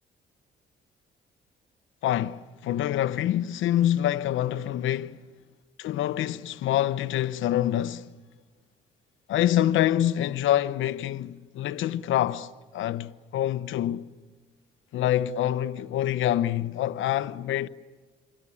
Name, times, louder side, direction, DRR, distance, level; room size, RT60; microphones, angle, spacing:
voice 1, 2.0-5.2 5.8-8.1 9.3-14.1 14.9-17.7, left 12 dB, 80° left, 0.9 m, -26 dB
27.0 x 24.5 x 8.6 m
cardioid pair, 90°, 20 cm